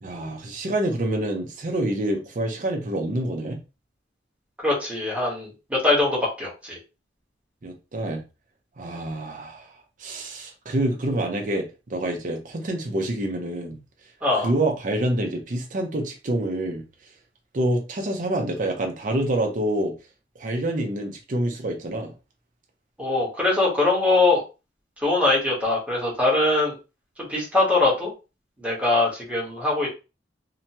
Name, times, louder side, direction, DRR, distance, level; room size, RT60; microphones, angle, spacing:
voice 1, 0.0-3.6 7.6-8.2 8.8-13.8 14.4-16.8 17.5-19.9 20.4-22.1, right 1 dB, 45° right, 0.6 m, -27 dB
voice 2, 4.6-6.8 14.2-14.5 23.0-24.4 25.0-26.7 27.3-28.1 28.6-30.0, left 2 dB, 5° right, 1.1 m, -22 dB
2.8 x 2.2 x 2.8 m
head